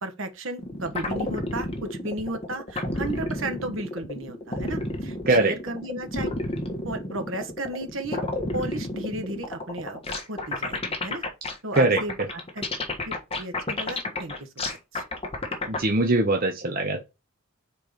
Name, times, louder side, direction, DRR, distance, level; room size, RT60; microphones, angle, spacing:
voice 1, 0.0-6.3 6.8-8.2 8.5-10.0 10.3-11.2 11.6-12.7 13.1-15.0, right 1 dB, 60° right, 1.3 m, -34 dB
sound 1, 0.6-15.8, left 2 dB, 25° left, 1.5 m, -31 dB
voice 2, 15.7-17.1, right 2 dB, 45° right, 0.9 m, -22 dB
4.6 x 4.6 x 5.1 m
head